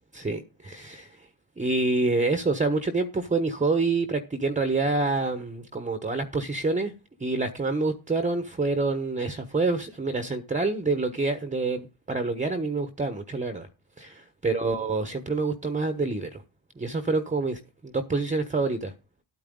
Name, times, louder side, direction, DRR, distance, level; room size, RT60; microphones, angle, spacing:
voice 1, 0.1-1.1 1.6-6.9 7.2-13.7 14.0-16.4 16.8-18.9, right 3 dB, 15° right, 1.2 m, -27 dB
11.5 x 9.1 x 3.8 m
cardioid pair, 95°, 45 cm